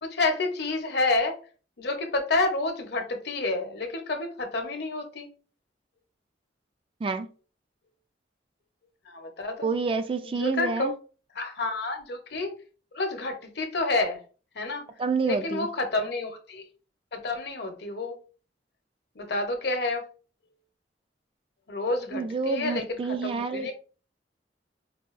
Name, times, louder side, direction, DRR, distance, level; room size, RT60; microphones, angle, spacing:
voice 1, 0.0-1.3 1.8-5.3 9.1-9.7 10.2-10.9 11.4-12.5 12.9-14.2 14.6-14.8 15.2-16.6 17.1-18.1 19.2-20.0 21.7-23.7, left 2 dB, 65° left, 0.8 m, -29 dB
voice 2, 9.6-11.0 15.0-15.7 22.1-23.7, right 4 dB, 30° right, 0.3 m, -28 dB
4.8 x 2.3 x 2.5 m
head